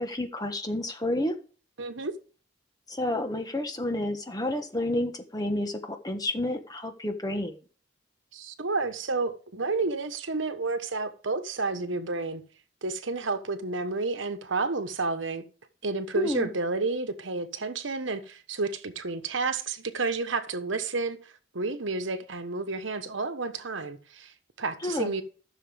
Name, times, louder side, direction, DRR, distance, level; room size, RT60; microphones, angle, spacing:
voice 1, 0.0-1.3 2.9-7.6 16.1-16.5 24.8-25.1, left 1 dB, 20° left, 1.3 m, -30 dB
voice 2, 1.8-2.1 8.3-12.4 12.8-15.4 15.8-25.2, right 3 dB, 75° right, 1.2 m, -31 dB
14.5 x 6.7 x 3.5 m
head